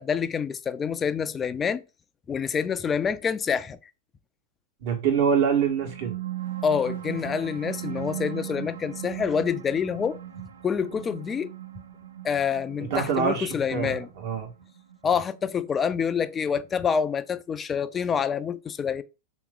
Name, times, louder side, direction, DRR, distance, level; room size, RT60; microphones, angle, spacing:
voice 1, 0.0-1.8 2.3-3.8 6.6-10.2 10.6-11.5 12.2-14.1 15.0-19.0, left 7 dB, 20° left, 0.4 m, -27 dB
voice 2, 4.8-6.1 12.8-14.5, right 7 dB, 60° right, 1.4 m, -25 dB
sound 1, 5.7-16.6, right 12 dB, 90° right, 0.6 m, -38 dB
3.4 x 3.0 x 3.7 m
hypercardioid pair, 115°, 0 cm